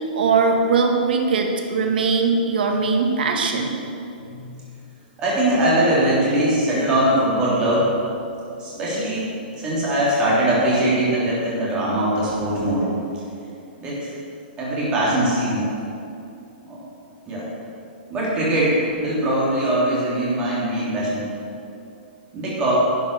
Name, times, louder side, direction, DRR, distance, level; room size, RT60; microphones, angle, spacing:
voice 1, 0.1-3.8, right 4 dB, 65° right, 2 dB, 1.9 m, -20 dB
voice 2, 4.2-4.6 5.2-8.1 8.5-9.2 9.6-12.8 13.8-14.1 14.6-15.7 16.6-16.8 17.3-17.5 18.1-21.3 22.3-22.7, right 1 dB, 15° right, -7 dB, 3.1 m, -21 dB
11.5 x 8.9 x 6.7 m, 2.7 s
hypercardioid pair, 180°, 6 cm